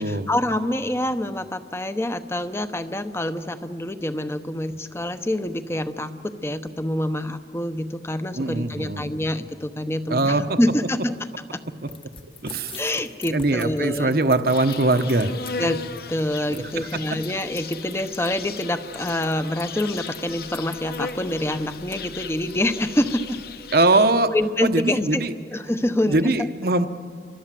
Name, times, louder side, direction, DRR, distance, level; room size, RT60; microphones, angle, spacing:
voice 1, 0.0-6.1 6.4-11.1 11.5-11.6 12.8-14.2 15.6-15.8 16.1-23.4 24.3-25.2 25.5-26.3, left 1 dB, 15° left, 10 dB, 0.9 m, -26 dB
voice 2, 8.3-9.2 10.1-10.6 12.4-12.8 13.3-15.4 16.5-16.9 23.7-24.3 24.6-25.3 26.0-26.9, right 2 dB, 55° right, 9 dB, 1.0 m, -21 dB
sound 1, 11.9-22.5, left 5 dB, 30° left, 1.3 m, -44 dB
Insect, 14.5-24.3, left 5 dB, 60° left, 0.9 m, -37 dB
29.0 x 24.5 x 7.6 m, 2.2 s
head